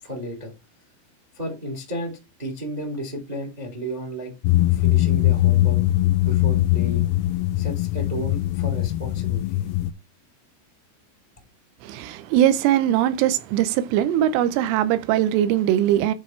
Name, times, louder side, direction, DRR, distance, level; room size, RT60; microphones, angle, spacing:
voice 1, 0.0-0.5 1.3-4.3 4.7-5.9 6.2-7.1 7.5-9.6, equal, 65° right, 0.4 m, -33 dB
sound 1, 4.5-9.9, left 16 dB, 90° left, 3.3 m, -21 dB
voice 2, 11.8-16.1, right 11 dB, 80° right, 3.2 m, -21 dB
9.5 x 4.5 x 4.4 m
omnidirectional pair, 5.9 m